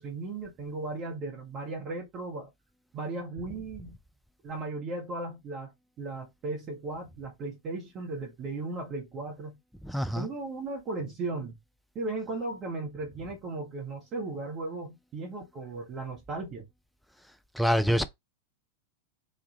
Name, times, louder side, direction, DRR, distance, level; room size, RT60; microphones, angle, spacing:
voice 1, 0.0-2.5 2.9-3.9 4.4-5.7 6.0-9.6 10.1-11.6 11.9-16.7, right 3 dB, 30° right, 1.0 m, -36 dB
voice 2, 9.8-10.3 17.5-18.1, equal, ahead, 0.5 m, -25 dB
3.2 x 2.3 x 3.9 m
figure-of-eight pair, 90°, 0 cm